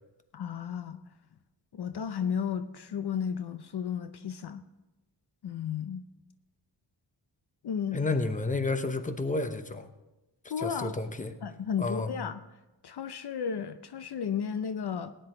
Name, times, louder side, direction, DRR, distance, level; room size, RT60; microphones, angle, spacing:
voice 1, 0.3-1.0 1.7-4.6 5.4-6.0 7.6-8.0 10.5-10.9 11.4-12.4 12.8-15.1, left 7 dB, 60° left, 11 dB, 0.6 m, -33 dB
voice 2, 7.9-9.9 10.6-11.3 11.8-12.1, left 3 dB, 15° left, 9 dB, 0.8 m, -31 dB
18.0 x 10.0 x 3.8 m, 1.1 s
wide cardioid pair, 125°, 45 cm